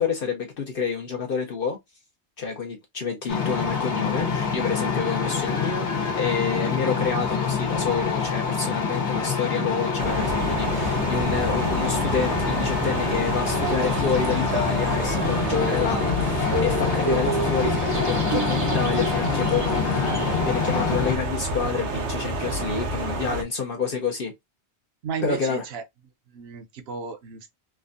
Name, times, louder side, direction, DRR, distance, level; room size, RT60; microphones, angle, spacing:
voice 1, 0.0-1.8 2.4-24.3 25.2-25.6, left 5 dB, 60° left, 0.8 m, -28 dB
sound 1, 3.3-21.2, left 5 dB, 80° left, 1.1 m, -26 dB
sound 2, 10.0-23.4, right 2 dB, 90° right, 1.0 m, -29 dB
sound 3, 13.5-20.4, right 1 dB, 40° right, 0.5 m, -32 dB
voice 2, 25.0-25.8 26.3-27.5, right 5 dB, 65° right, 0.9 m, -33 dB
3.4 x 2.1 x 2.4 m
omnidirectional pair, 1.1 m